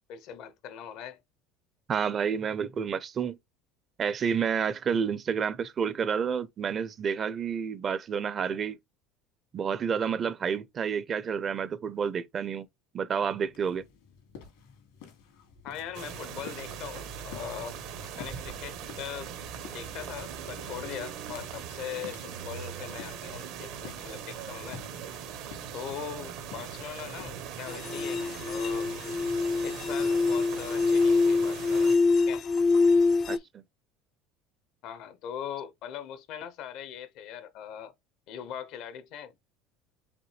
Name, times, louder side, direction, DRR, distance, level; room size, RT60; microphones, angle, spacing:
voice 1, 0.1-1.2 15.6-17.8 18.1-19.3 19.7-24.8 25.7-28.9 29.6-32.4 33.3-33.5 34.8-37.9 38.3-39.3, left 9 dB, 65° left, 0.7 m, -41 dB
voice 2, 1.9-3.4 4.0-8.8 9.5-12.7 12.9-13.8 33.3-33.6, right 7 dB, 35° right, 0.5 m, -29 dB
sound 1, 13.4-31.0, left 7 dB, 85° left, 2.0 m, -52 dB
sound 2, 15.9-32.0, right 8 dB, 70° right, 1.1 m, -40 dB
sound 3, 27.7-33.4, left 4 dB, 40° left, 0.4 m, -25 dB
5.2 x 2.7 x 3.2 m
supercardioid pair, 105°, 0 cm